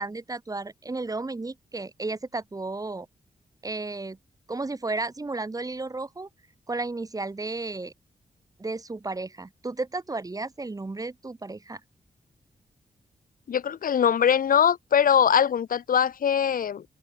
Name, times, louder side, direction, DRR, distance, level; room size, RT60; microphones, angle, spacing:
voice 1, 0.0-3.1 3.6-4.2 4.5-6.3 6.7-7.9 8.6-11.8, right 3 dB, 25° right, 5.2 m, -33 dB
voice 2, 13.5-16.8, left 8 dB, 80° left, 2.0 m, -22 dB
wide cardioid pair, 115°, 14 cm